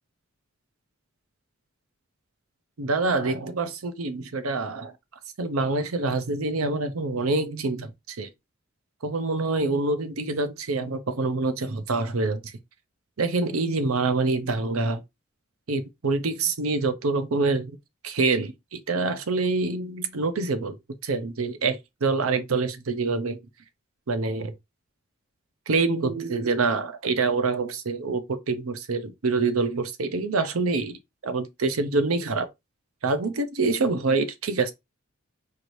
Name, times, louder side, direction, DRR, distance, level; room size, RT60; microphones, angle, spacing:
voice 1, 2.8-4.9 5.4-8.3 9.0-12.5 13.2-15.0 15.7-17.8 18.0-20.8 21.0-23.4 24.1-24.5 25.7-31.0 31.2-32.5 33.0-34.7, right 3 dB, 90° right, 0.7 m, -26 dB
4.7 x 2.6 x 3.1 m
head